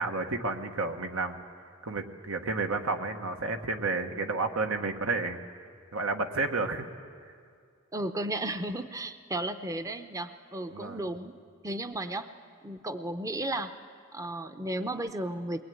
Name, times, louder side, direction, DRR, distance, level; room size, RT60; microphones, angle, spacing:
voice 1, 0.0-1.4 1.8-5.4 5.9-6.9 10.7-11.0, right 3 dB, 85° right, 5 dB, 1.5 m, -31 dB
voice 2, 7.9-11.3 11.6-12.3 12.6-13.7 14.1-15.6, right 1 dB, 15° right, 9 dB, 0.7 m, -34 dB
22.0 x 20.0 x 9.5 m, 2.2 s
head